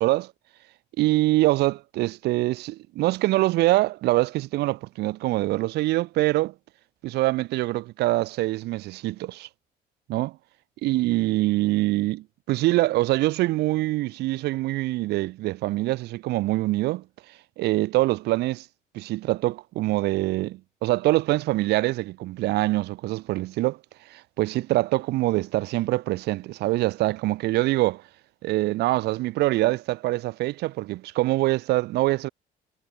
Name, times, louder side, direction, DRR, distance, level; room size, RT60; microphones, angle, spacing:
voice 1, 0.0-0.3 1.0-6.5 7.0-9.5 10.1-10.4 10.8-17.0 17.6-18.7 18.9-23.8 24.1-28.0 28.4-32.3, right 18 dB, 75° right, 0.7 m, -24 dB
cardioid pair, 110°, 17 cm